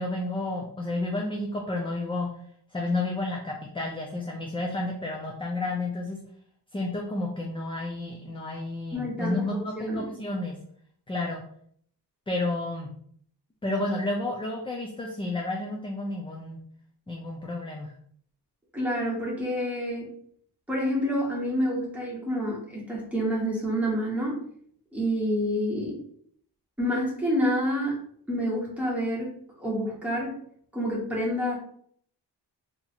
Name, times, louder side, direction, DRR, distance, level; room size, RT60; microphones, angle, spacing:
voice 1, 0.0-2.3 2.7-6.2 6.7-10.6 11.1-11.4 12.3-12.9 13.6-16.6 17.1-17.9, left 2 dB, 15° left, -1 dB, 0.3 m, -31 dB
voice 2, 8.9-10.1 18.7-20.1 20.7-24.4 24.9-26.0 26.8-28.0 28.3-29.3 29.6-30.4 30.7-31.5, equal, 5° right, -6 dB, 1.2 m, -28 dB
2.8 x 2.4 x 4.1 m, 0.63 s
wide cardioid pair, 165°, 42 cm